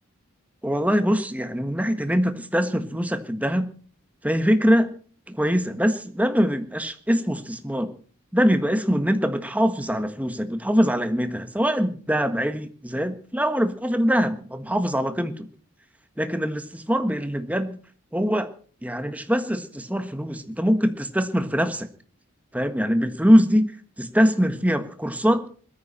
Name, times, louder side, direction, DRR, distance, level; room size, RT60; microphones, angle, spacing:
voice 1, 0.6-3.7 4.2-4.9 5.3-7.9 8.3-15.5 16.2-17.8 18.1-18.5 18.8-21.9 22.5-25.5, equal, 5° right, 9 dB, 1.4 m, -23 dB
21.0 x 14.0 x 4.3 m, 0.42 s
head